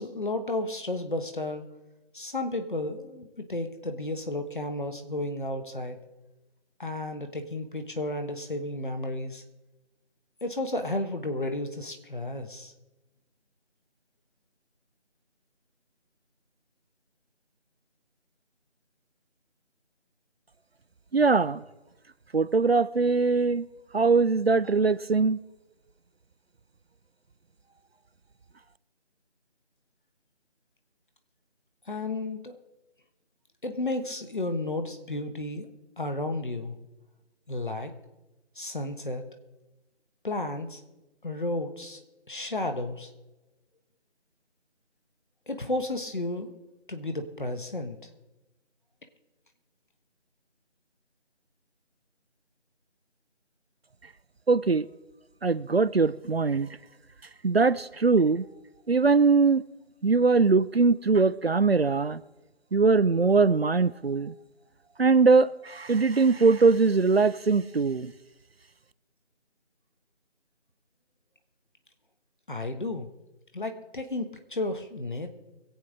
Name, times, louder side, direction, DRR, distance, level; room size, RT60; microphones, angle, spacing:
voice 1, 0.0-1.6 2.1-6.0 6.8-9.4 10.4-12.7 31.9-32.6 33.6-35.7 36.0-36.8 37.5-37.9 38.6-39.2 40.2-40.8 41.2-42.0 42.3-43.1 45.5-46.5 46.9-48.1 72.5-73.1 73.5-75.3, left 2 dB, 45° left, 1.4 m, -32 dB
voice 2, 21.1-21.6 22.3-23.6 23.9-25.4 54.5-54.9 55.4-56.7 57.4-58.4 58.9-59.6 60.0-62.2 62.7-64.3 65.0-68.1, right 4 dB, 60° right, 0.5 m, -22 dB
24.5 x 8.2 x 3.7 m
figure-of-eight pair, 165°, 35 cm